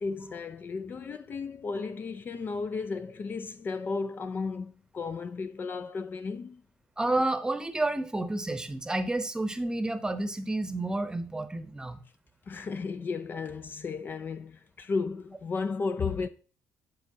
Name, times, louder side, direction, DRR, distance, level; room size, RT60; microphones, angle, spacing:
voice 1, 0.0-6.6 12.5-16.3, left 4 dB, 40° left, 0.4 m, -34 dB
voice 2, 7.0-12.0, right 2 dB, 15° right, 0.8 m, -30 dB
13.0 x 4.4 x 2.7 m
cardioid pair, 85°, 5 cm